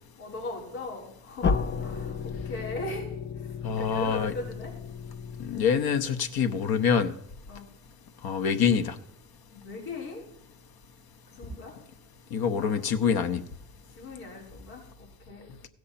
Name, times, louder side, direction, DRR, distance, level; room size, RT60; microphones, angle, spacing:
voice 1, 0.2-3.1 3.4-4.8 7.5-7.7 9.5-10.2 11.3-11.7 12.5-12.8 13.9-14.8 15.2-15.5, left 2 dB, 85° left, -6 dB, 5.0 m, -38 dB
sound 1, 1.4-6.2, left 6 dB, 25° left, 0.5 m, -33 dB
voice 2, 3.6-4.3 5.4-7.1 8.2-9.0 12.3-13.4, left 7 dB, 55° left, 9 dB, 1.1 m, -25 dB
16.5 x 6.6 x 4.3 m, 0.76 s
hypercardioid pair, 65°, 44 cm